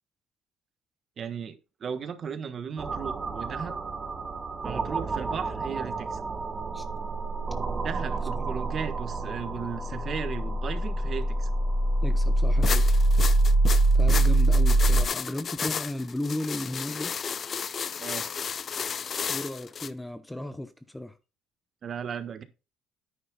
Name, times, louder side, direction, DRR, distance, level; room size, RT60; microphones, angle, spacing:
voice 1, 1.2-3.8 4.6-6.2 7.7-11.5 18.0-18.3 21.8-22.4, right 7 dB, 45° right, 1.3 m, -36 dB
sound 1, 2.8-15.0, right 2 dB, 25° right, 1.4 m, -25 dB
voice 2, 12.0-12.9 13.9-17.1 19.3-21.1, left 1 dB, 5° left, 0.8 m, -35 dB
sound 2, 12.6-19.9, left 6 dB, 40° left, 0.5 m, -33 dB
9.9 x 9.6 x 2.3 m
cardioid pair, 110°, 0 cm